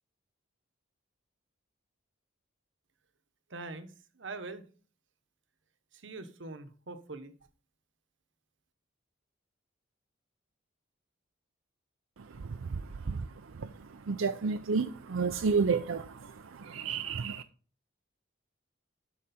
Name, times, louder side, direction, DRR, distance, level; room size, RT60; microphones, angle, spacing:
voice 1, 3.5-4.6 5.9-7.3, right 3 dB, 70° right, 1.1 m, -43 dB
voice 2, 12.2-17.4, right 5 dB, 90° right, 0.5 m, -32 dB
12.5 x 4.9 x 4.2 m
head